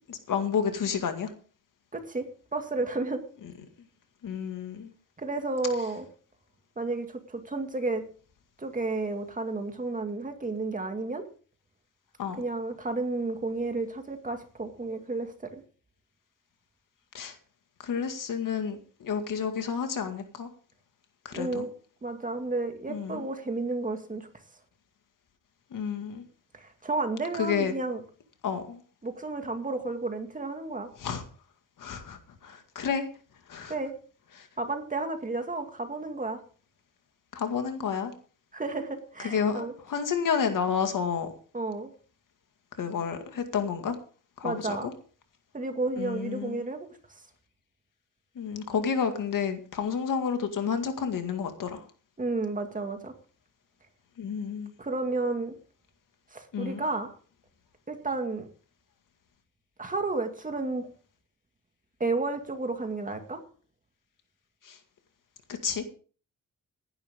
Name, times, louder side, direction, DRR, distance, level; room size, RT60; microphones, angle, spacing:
voice 1, 0.1-1.3 4.2-4.9 12.2-12.4 17.1-17.3 17.8-20.5 21.2-21.7 22.9-23.3 25.7-26.2 27.4-27.7 28.4-28.8 31.0-31.2 31.8-33.1 33.5-33.7 34.4-34.5 37.3-38.1 39.2-41.3 42.8-44.0 44.4-44.9 46.0-46.7 48.4-51.8 54.2-54.7 56.5-56.8 64.6-64.8 65.5-65.8, left 6 dB, 70° left, 7 dB, 2.1 m, -30 dB
voice 2, 1.9-2.2 2.5-3.2 5.2-6.1 6.8-8.0 8.6-11.2 12.4-15.6 21.3-21.7 22.0-24.3 26.5-28.0 29.0-30.9 33.7-33.9 34.6-36.4 38.5-39.7 41.5-41.9 44.4-44.9 45.5-46.9 52.2-53.1 54.8-55.5 56.3-57.2 57.9-58.5 59.8-60.9 62.0-63.4, right 3 dB, 25° right, 5 dB, 2.1 m, -32 dB
15.5 x 11.0 x 3.7 m, 0.40 s
wide cardioid pair, 125°, 33 cm